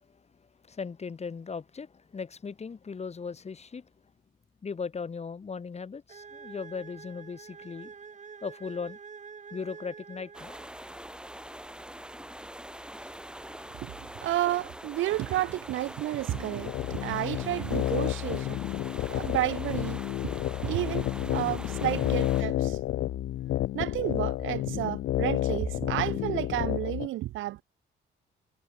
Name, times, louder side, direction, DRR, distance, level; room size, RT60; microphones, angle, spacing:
voice 1, 0.7-3.9 4.6-7.9 8.4-9.0 9.5-10.5 21.4-21.6 21.8-22.1, left 5 dB, 35° left, 1.8 m, -38 dB
sound 1, 6.1-11.0, right 6 dB, 35° right, 1.9 m, -47 dB
sound 2, 10.3-22.4, right 1 dB, 5° right, 2.5 m, -44 dB
voice 2, 13.8-18.6 19.1-20.0 20.6-22.8 23.7-27.6, right 15 dB, 80° right, 0.8 m, -31 dB
sound 3, 16.3-27.1, left 14 dB, 75° left, 0.7 m, -30 dB
cardioid pair, 90°, 20 cm